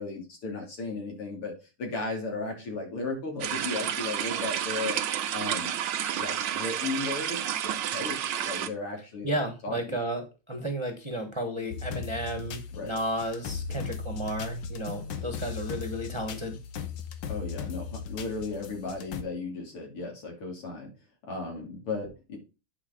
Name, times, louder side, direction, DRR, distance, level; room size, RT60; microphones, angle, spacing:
voice 1, 0.0-1.5 1.8-5.0 5.3-5.7 6.2-10.0 12.7-13.0 17.3-20.9 21.3-22.4, left 3 dB, 90° left, 1 dB, 3.9 m, -35 dB
sound 1, 3.4-8.7, right 10 dB, 75° right, 1.6 m, -30 dB
voice 2, 9.2-16.6, right 1 dB, 15° right, 3 dB, 1.1 m, -33 dB
sound 2, 11.7-19.2, left 6 dB, 70° left, 1.7 m, -37 dB
9.8 x 5.0 x 3.9 m, 0.29 s
omnidirectional pair, 2.4 m